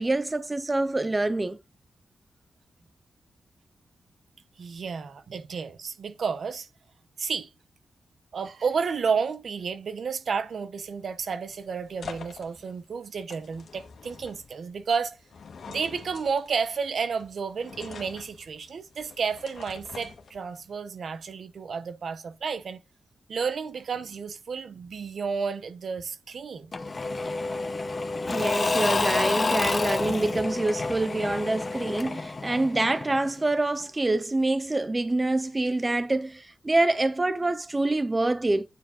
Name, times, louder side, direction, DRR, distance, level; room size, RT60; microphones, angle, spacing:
voice 1, 0.0-1.6 28.2-38.6, right 2 dB, 15° right, 0.4 m, -26 dB
voice 2, 4.6-6.7 7.2-7.5 8.3-15.2 15.7-22.8 23.3-26.7, right 5 dB, 55° right, 0.9 m, -31 dB
sound 1, 10.9-20.7, left 5 dB, 60° left, 1.6 m, -46 dB
Engine / Mechanisms / Drill, 26.7-33.4, left 3 dB, 25° left, 0.9 m, -29 dB
9.3 x 4.7 x 5.5 m
wide cardioid pair, 180°, 0 cm